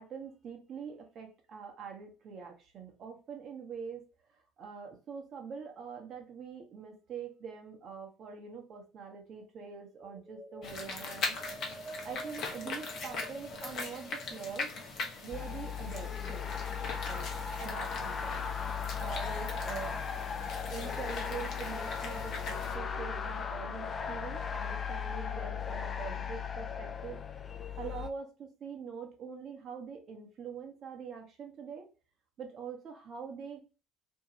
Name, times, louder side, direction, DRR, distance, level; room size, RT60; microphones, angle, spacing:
voice 1, 0.0-4.0 4.6-11.4 12.0-14.7 15.2-16.5 17.0-18.5 19.0-20.0 20.7-27.2 27.8-31.8 32.4-33.6, right 6 dB, 50° right, 3 dB, 0.9 m, -44 dB
sound 1, 10.0-23.3, right 2 dB, 25° right, 0.6 m, -49 dB
sound 2, 10.6-22.8, left 4 dB, 55° left, 0.7 m, -41 dB
sound 3, 15.3-28.1, left 7 dB, 35° left, 0.3 m, -37 dB
2.7 x 2.2 x 2.9 m, 0.33 s
hypercardioid pair, 65°, 0 cm